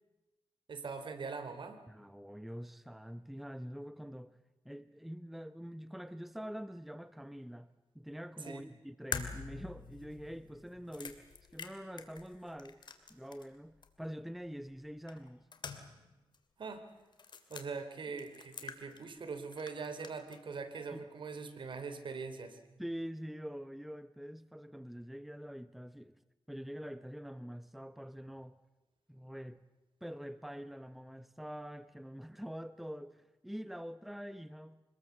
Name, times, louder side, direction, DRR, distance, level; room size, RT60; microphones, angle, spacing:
voice 1, 0.7-1.8 8.4-8.6 16.6-16.9 17.5-22.6, right 4 dB, 60° right, 3.1 m, -42 dB
voice 2, 1.9-4.4 4.6-12.8 13.1-15.5 20.9-21.0 22.8-26.2 26.5-28.6 29.1-29.6 30.0-34.8, equal, ahead, 0.8 m, -45 dB
sound 1, 9.1-13.6 13.8-13.9 15.1-16.1 16.3-16.4 17.1-17.7 18.2-19.3 19.5-20.4, left 5 dB, 55° left, 2.6 m, -45 dB
26.0 x 20.0 x 8.1 m
cardioid pair, 80°, 9 cm